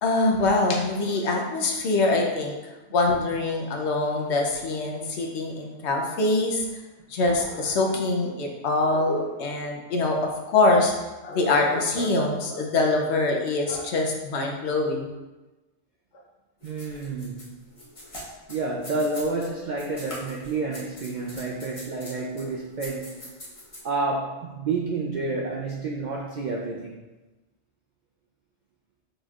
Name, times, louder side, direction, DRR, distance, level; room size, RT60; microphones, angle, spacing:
voice 1, 0.0-2.6 2.9-6.6 7.1-10.2 10.5-10.9 11.2-15.1, left 2 dB, 65° left, 1 dB, 0.9 m, -24 dB
sound 1, 16.6-19.5 19.8-23.8, left 1 dB, 30° left, 1.1 m, -43 dB
voice 2, 16.6-17.5 18.5-23.1 23.8-27.0, right 3 dB, 65° right, -2 dB, 0.4 m, -29 dB
6.3 x 3.2 x 2.4 m, 1.1 s
omnidirectional pair, 1.3 m